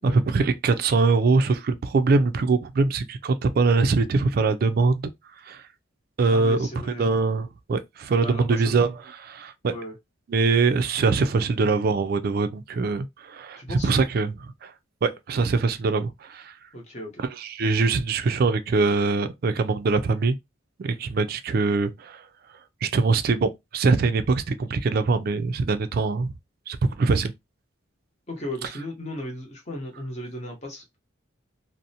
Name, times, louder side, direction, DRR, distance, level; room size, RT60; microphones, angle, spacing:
voice 1, 0.0-5.1 5.4-5.6 6.2-6.7 7.0-8.9 9.3-9.7 10.3-14.7 15.0-16.5 17.4-20.4 20.8-22.2 22.8-26.3 26.7-27.3, right 4 dB, 50° right, 0.3 m, -23 dB
voice 2, 6.3-7.3 8.2-8.8 9.6-10.0 13.6-13.9 16.7-17.2 28.3-31.0, equal, 35° left, 0.8 m, -36 dB
2.5 x 2.0 x 2.7 m
head